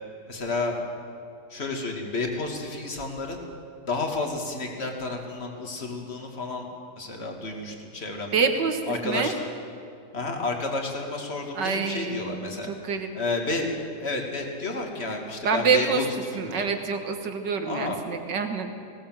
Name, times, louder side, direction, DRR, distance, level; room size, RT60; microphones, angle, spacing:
voice 1, 0.3-0.8 1.5-3.4 3.9-6.7 7.0-8.4 8.9-9.3 10.1-12.7 13.1-13.7 14.0-16.1 16.3-16.7 17.6-18.0, left 3 dB, 35° left, 2 dB, 2.5 m, -31 dB
voice 2, 8.3-9.3 11.5-13.1 15.4-16.0 16.3-18.8, right 5 dB, 80° right, 6 dB, 2.2 m, -26 dB
20.0 x 17.5 x 7.6 m, 2.5 s
omnidirectional pair, 1.9 m